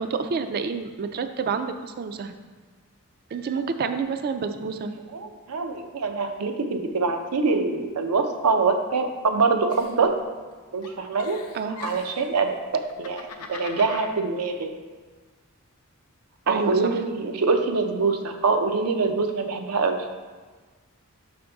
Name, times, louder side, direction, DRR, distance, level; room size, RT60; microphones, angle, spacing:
voice 1, 0.0-2.3 3.3-4.9 11.5-11.8 16.5-17.0, right 5 dB, 45° right, 8 dB, 0.3 m, -28 dB
voice 2, 5.1-10.2 10.7-11.4 11.8-12.5 13.0-14.8 16.5-20.0, right 4 dB, 90° right, 5 dB, 0.6 m, -24 dB
Giggle, 9.7-10.5 10.8-12.3 12.8-14.1, left 5 dB, 90° left, 0.6 m, -41 dB
5.9 x 5.1 x 3.5 m, 1.4 s
head